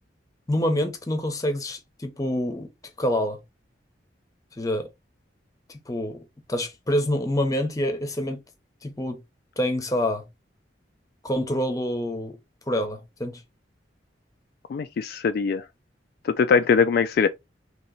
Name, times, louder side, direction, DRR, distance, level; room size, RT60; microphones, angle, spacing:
voice 1, 0.5-2.7 3.0-3.4 4.6-4.9 5.7-6.2 6.5-8.4 8.8-9.2 9.6-10.2 11.2-12.4 12.7-13.4, left 1 dB, 20° left, 0.8 m, -26 dB
voice 2, 14.7-15.6 16.2-17.3, left 5 dB, 55° left, 0.3 m, -21 dB
3.1 x 3.0 x 3.9 m
head